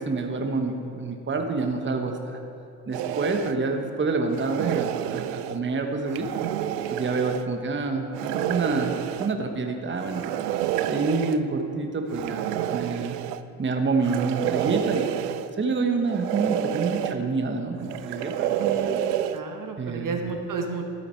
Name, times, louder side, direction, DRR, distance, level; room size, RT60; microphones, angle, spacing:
voice 1, 0.0-2.4 2.9-6.3 6.9-10.3 10.9-13.2 13.6-15.1 15.6-18.5 19.8-20.2, right 3 dB, 25° right, 4 dB, 1.2 m, -27 dB
sound 1, 2.9-3.6 4.3-5.6 6.1-7.4 8.1-9.3 10.0-11.4 12.1-13.4 14.0-15.5 16.0-17.1 17.8-19.4, right 11 dB, 85° right, 0.6 m, -29 dB
voice 2, 18.6-18.9 19.3-20.8, right 4 dB, 40° right, 3 dB, 1.2 m, -32 dB
13.0 x 7.8 x 4.5 m, 2.9 s
hypercardioid pair, 60°, 47 cm